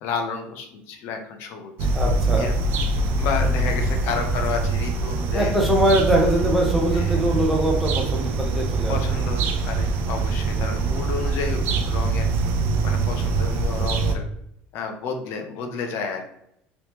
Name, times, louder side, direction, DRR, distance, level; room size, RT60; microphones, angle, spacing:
voice 1, 0.0-1.7 2.4-2.5 3.2-5.5 5.9-6.0 6.9-7.2 8.9-12.3 12.8-14.2 14.7-16.3, left 5 dB, 55° left, 4 dB, 0.6 m, -31 dB
sound 1, 1.8-14.2, right 3 dB, 50° right, 0.5 m, -23 dB
voice 2, 1.9-2.5 5.3-8.9, right 1 dB, 5° right, -1 dB, 0.6 m, -22 dB
3.4 x 3.0 x 2.9 m, 0.75 s
cardioid pair, 170°, 5 cm